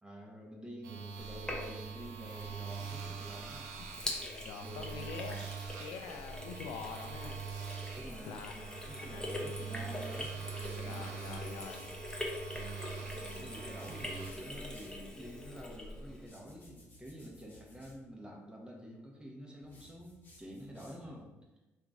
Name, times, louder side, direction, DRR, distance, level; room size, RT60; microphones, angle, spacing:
voice 1, 0.0-3.7 4.4-5.4 7.9-11.6 13.2-21.3, equal, 15° right, -1 dB, 1.0 m, -49 dB
sound 1, 0.8-14.3, right 6 dB, 80° right, 0.5 m, -44 dB
Sink (filling or washing), 1.2-16.3, left 1 dB, 15° left, 0.8 m, -44 dB
voice 2, 3.9-5.4 5.8-7.4 7.7-7.9 8.3-8.5 9.0-9.4 10.8-11.9, left 7 dB, 80° left, 7 dB, 0.3 m, -45 dB
sound 2, 10.0-12.0 13.1-15.0 16.1-18.0 19.6-21.2, left 1 dB, 30° left, 1.2 m, -59 dB
2.9 x 2.6 x 3.6 m, 1.1 s
hypercardioid pair, 55°, 6 cm